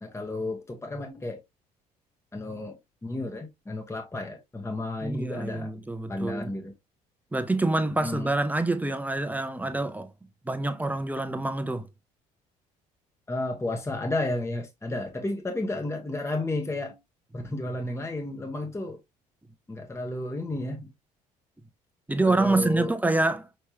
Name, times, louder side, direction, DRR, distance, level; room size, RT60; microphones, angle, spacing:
voice 1, 0.0-1.4 2.3-2.7 3.0-5.7 6.1-6.7 8.0-8.3 13.3-17.0 17.3-19.0 19.7-20.9 22.2-22.9, left 2 dB, 15° left, 1.1 m, -32 dB
voice 2, 5.0-6.5 7.3-10.1 10.5-11.9 22.1-23.5, right 2 dB, 10° right, 0.8 m, -26 dB
5.7 x 3.1 x 2.8 m
figure-of-eight pair, 55°, 20 cm